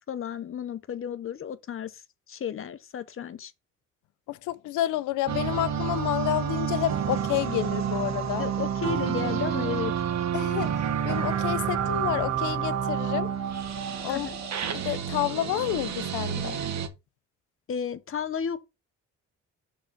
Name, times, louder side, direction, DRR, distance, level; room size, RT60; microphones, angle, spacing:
voice 1, 0.1-3.5 8.4-9.9 14.1-14.4 17.7-18.6, left 8 dB, 45° left, 0.9 m, -33 dB
voice 2, 4.3-8.5 10.3-13.3 14.0-14.3 14.7-16.6, left 14 dB, 85° left, 0.6 m, -29 dB
sound 1, 5.3-16.9, right 8 dB, 65° right, 1.4 m, -29 dB
6.3 x 3.8 x 5.1 m
cardioid pair, 90°, 30 cm